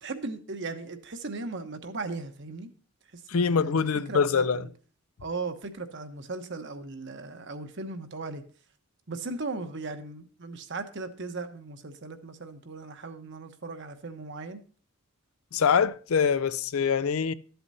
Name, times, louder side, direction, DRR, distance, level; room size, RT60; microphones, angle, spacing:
voice 1, 0.0-2.7 3.1-4.7 5.2-8.4 9.1-14.6, right 3 dB, 55° right, 1.0 m, -37 dB
voice 2, 3.3-4.6 15.5-17.3, left 6 dB, 70° left, 0.5 m, -24 dB
12.5 x 7.9 x 2.7 m
head